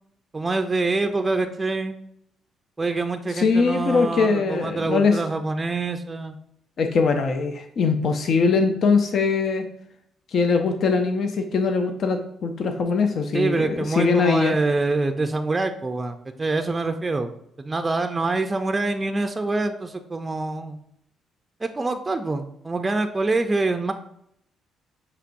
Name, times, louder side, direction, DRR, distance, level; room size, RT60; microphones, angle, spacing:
voice 1, 0.3-2.0 2.8-6.4 13.3-17.3 17.6-20.8 21.6-23.9, right 3 dB, 25° right, 6 dB, 0.4 m, -25 dB
voice 2, 3.3-5.2 6.8-9.7 10.3-14.6, left 4 dB, 60° left, 6 dB, 0.4 m, -21 dB
5.8 x 2.9 x 2.5 m, 0.72 s
cardioid pair, 90°, 0 cm